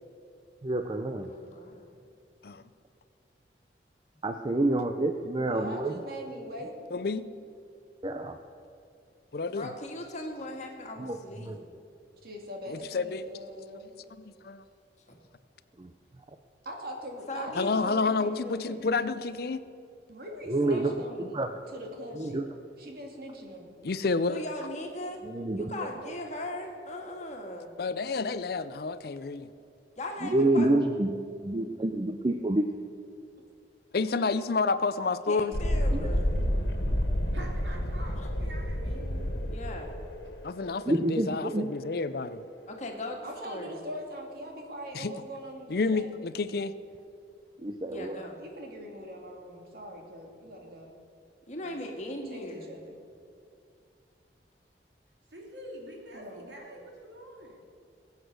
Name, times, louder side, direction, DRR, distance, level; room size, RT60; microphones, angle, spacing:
voice 1, 0.6-1.3 4.2-6.0 8.0-8.4 11.0-11.2 11.4-11.6 15.8-15.9 20.5-20.9 21.2-21.5 22.2-22.5 25.2-25.9 30.2-31.1 31.4-32.7 35.9-36.6 40.9-41.7 47.6-48.2, right 2 dB, 25° right, 6 dB, 0.5 m, -28 dB
voice 2, 1.3-1.9 9.5-11.6 15.1-15.2 17.3-17.8 20.7-20.9 24.3-25.2 25.6-27.7 30.0-30.7 35.3-36.3 38.2-38.3 39.5-40.0 42.7-43.8 47.9-48.4 51.5-52.7, left 1 dB, 40° left, 2 dB, 1.8 m, -39 dB
voice 3, 5.5-6.8 12.2-13.9 16.6-18.9 20.1-22.5 22.8-23.8 38.8-39.3 43.2-46.1 48.4-50.9 51.6-51.8 52.2-53.0 56.1-56.5, equal, 55° right, 1 dB, 2.5 m, -42 dB
voice 4, 6.9-7.3 9.3-9.7 12.7-13.3 14.2-14.6 17.5-19.6 23.8-24.4 27.8-29.5 33.9-35.5 40.4-42.4 44.9-45.1 45.7-46.7, left 4 dB, 60° left, 14 dB, 0.5 m, -29 dB
Thunderstorm, 35.5-43.0, equal, 90° left, 1.8 m, -30 dB
voice 5, 37.3-39.1 40.2-40.4 55.2-57.6, right 1 dB, 80° right, -1 dB, 2.9 m, -46 dB
20.5 x 8.2 x 6.4 m, 2.4 s
head